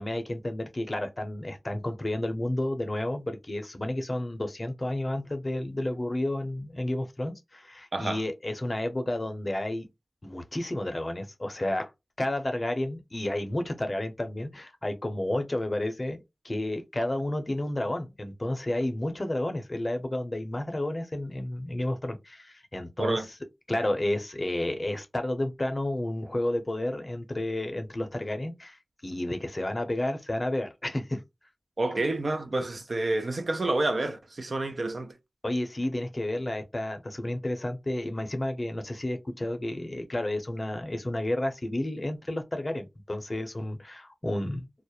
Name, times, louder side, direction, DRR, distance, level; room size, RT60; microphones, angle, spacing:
voice 1, 0.0-9.9 10.2-11.9 12.2-23.3 23.7-31.2 35.4-44.6, left 1 dB, 35° left, 0.6 m, -31 dB
voice 2, 31.8-35.1, right 2 dB, 60° right, 0.4 m, -29 dB
2.3 x 2.0 x 2.8 m
wide cardioid pair, 70°, 0 cm